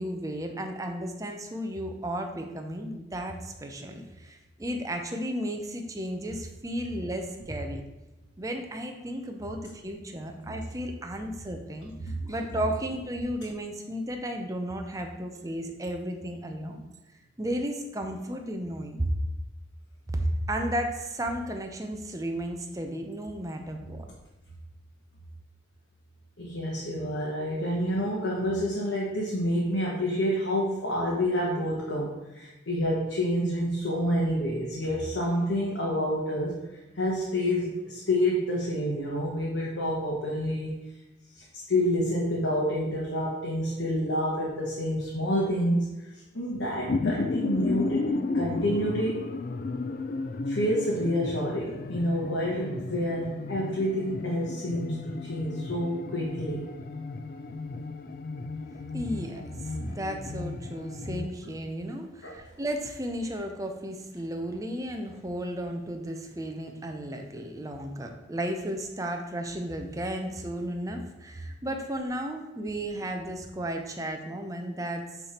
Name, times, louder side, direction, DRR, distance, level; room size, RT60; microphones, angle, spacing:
voice 1, 0.0-7.8 8.4-16.8 17.4-19.1 20.1-24.1 58.9-75.2, right 1 dB, 20° right, 3 dB, 0.6 m, -34 dB
voice 2, 26.4-36.6 36.9-40.8 41.3-49.2 50.5-56.6 62.2-62.3, equal, 90° left, -4 dB, 1.3 m, -28 dB
sound 1, 46.5-61.3, left 3 dB, 50° left, 0.3 m, -34 dB
8.1 x 3.4 x 4.4 m, 1.0 s
head